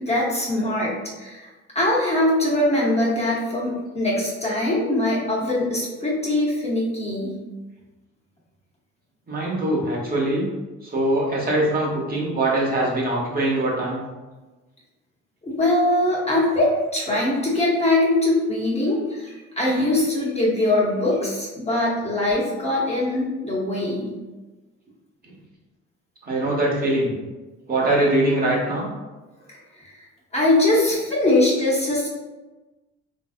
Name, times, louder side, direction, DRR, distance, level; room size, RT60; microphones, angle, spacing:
voice 1, 0.0-7.4 15.4-24.1 29.8-30.0 30.3-32.1, left 1 dB, 20° left, -6 dB, 0.9 m, -22 dB
voice 2, 9.3-10.5 10.8-14.0 26.2-27.1 27.7-28.9, right 1 dB, 30° right, -4 dB, 1.1 m, -22 dB
3.3 x 2.7 x 2.4 m, 1.2 s
cardioid pair, 90°, 30 cm